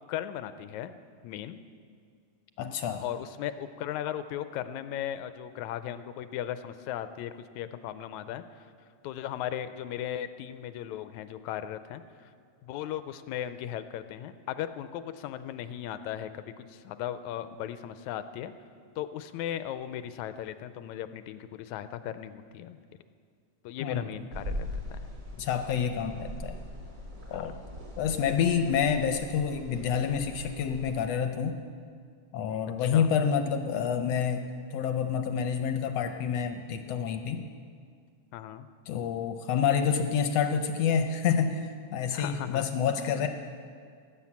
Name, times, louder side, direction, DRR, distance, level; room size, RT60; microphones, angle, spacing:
voice 1, 0.1-0.9 1.2-1.6 3.0-8.7 9.0-12.3 12.6-18.5 19.0-22.8 23.6-25.0 27.3-27.5 32.8-33.1 38.3-38.7 42.1-42.7 43.0-43.3, left 11 dB, 90° left, 12 dB, 2.0 m, -37 dB
voice 2, 2.6-3.0 23.8-24.1 25.4-26.6 27.3-27.5 28.0-31.6 32.3-37.4 38.9-43.3, left 7 dB, 75° left, 7 dB, 1.6 m, -28 dB
sound 1, 24.3-31.1, equal, 35° right, 3.3 m, -41 dB
18.0 x 9.1 x 7.3 m, 2.1 s
omnidirectional pair, 3.3 m